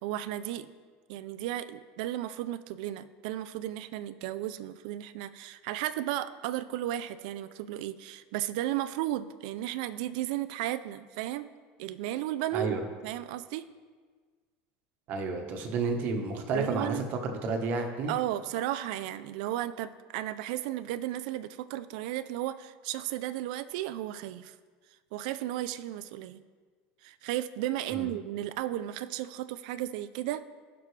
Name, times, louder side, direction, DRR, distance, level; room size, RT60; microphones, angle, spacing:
voice 1, 0.0-0.7 1.1-11.5 11.8-12.8 13.0-13.6 16.5-17.1 18.1-24.5 25.1-26.4 27.0-30.4, right 13 dB, 65° right, 13 dB, 0.4 m, -34 dB
voice 2, 12.5-12.8 15.1-18.1 27.9-28.1, right 4 dB, 40° right, 4 dB, 1.2 m, -31 dB
17.5 x 6.0 x 3.3 m, 1.5 s
cardioid pair, 165°, 5 cm